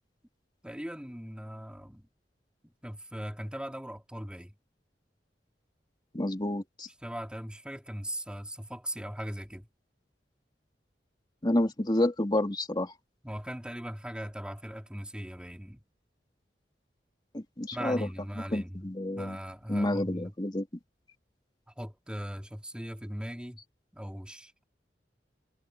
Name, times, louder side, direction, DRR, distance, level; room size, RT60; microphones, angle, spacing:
voice 1, 0.6-2.1 2.6-4.5 7.0-9.7 13.2-15.8 17.7-18.8 19.2-20.3 21.8-23.6 23.9-24.6, equal, 5° right, 3.9 m, -39 dB
voice 2, 6.1-6.9 11.4-12.9 17.3-18.1 18.5-19.4 19.7-20.7, left 1 dB, 25° left, 2.4 m, -29 dB
head